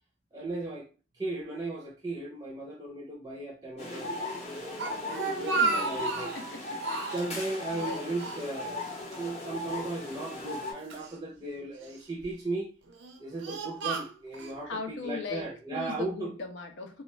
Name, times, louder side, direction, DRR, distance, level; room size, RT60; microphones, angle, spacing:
voice 1, 0.3-0.9 1.1-6.3 7.1-12.7 13.2-14.7 15.0-16.3, right 2 dB, 20° right, 0.5 m, -36 dB
sound 1, 3.8-10.7, left 2 dB, 35° left, 0.7 m, -37 dB
Speech, 4.8-6.5 6.8-7.4 7.8-8.9 9.1-9.3 10.1-11.1 11.8-12.2 12.9-14.6, right 4 dB, 80° right, 0.5 m, -33 dB
voice 2, 5.5-6.8 7.7-8.1 14.6-17.0, left 4 dB, 85° left, 0.5 m, -39 dB
2.4 x 2.2 x 3.0 m
head